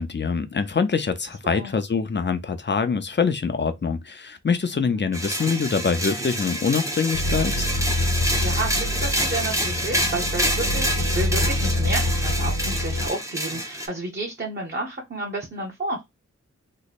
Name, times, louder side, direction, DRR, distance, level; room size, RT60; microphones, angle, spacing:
voice 1, 0.0-7.7, left 5 dB, 35° left, 0.6 m, -24 dB
sound 1, 5.1-13.9, right 1 dB, 10° right, 0.8 m, -27 dB
sound 2, 7.1-13.1, left 1 dB, 65° left, 1.1 m, -26 dB
voice 2, 8.3-16.0, right 2 dB, 35° right, 1.0 m, -31 dB
3.1 x 2.2 x 4.0 m
wide cardioid pair, 80°, 30 cm